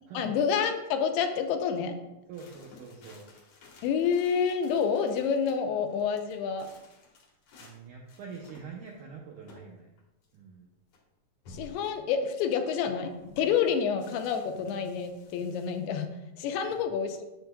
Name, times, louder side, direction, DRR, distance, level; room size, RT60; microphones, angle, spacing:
voice 1, 0.1-2.0 3.8-6.7 11.5-16.1 16.4-17.2, left 7 dB, 90° left, 6 dB, 2.7 m, -28 dB
sound 1, 2.3-5.5 5.9-7.8 8.1-9.0 9.5-9.7 10.0-10.1 10.9-11.0 11.4-11.9 12.8-13.5 14.0-15.8, left 3 dB, 70° left, 1.7 m, -52 dB
voice 2, 2.3-3.3 7.6-9.9 10.3-10.7 16.7-16.8, right 5 dB, 80° right, -1 dB, 1.8 m, -45 dB
7.8 x 7.8 x 2.2 m, 0.98 s
omnidirectional pair, 4.5 m